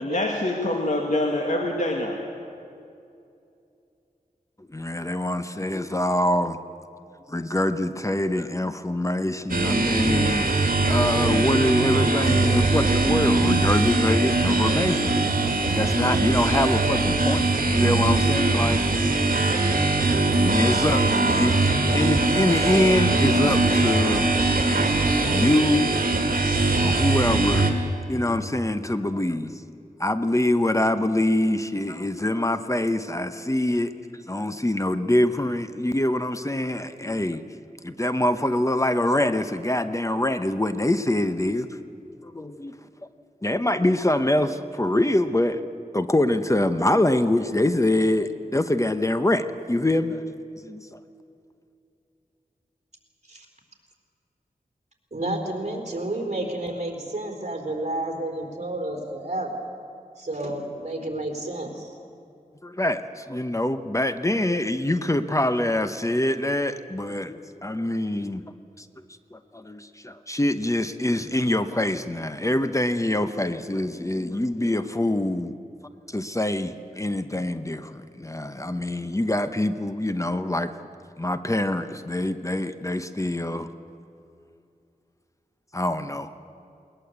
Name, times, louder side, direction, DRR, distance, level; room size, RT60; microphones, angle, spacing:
voice 1, 0.0-2.2, left 1 dB, 55° left, 1 dB, 2.0 m, -25 dB
voice 2, 4.7-6.6 7.3-10.6 10.9-15.2 15.7-19.3 19.6-19.7 20.3-24.3 25.3-25.9 26.8-27.7 28.1-29.5 30.0-33.9 34.3-37.4 37.8-41.7 42.2-42.7 43.4-45.6 45.9-50.2 50.6-51.0 62.6-68.4 68.8-68.9 69.3-75.5 76.1-80.7 81.2-83.7 85.7-86.3, left 1 dB, 20° left, 10 dB, 0.9 m, -24 dB
sound 1, 9.5-27.7, right 2 dB, 70° right, 2.2 m, -21 dB
voice 3, 55.1-59.5 60.2-62.0, right 1 dB, 50° right, 3 dB, 4.1 m, -30 dB
20.5 x 20.0 x 8.2 m, 2.6 s
wide cardioid pair, 60°, 15 cm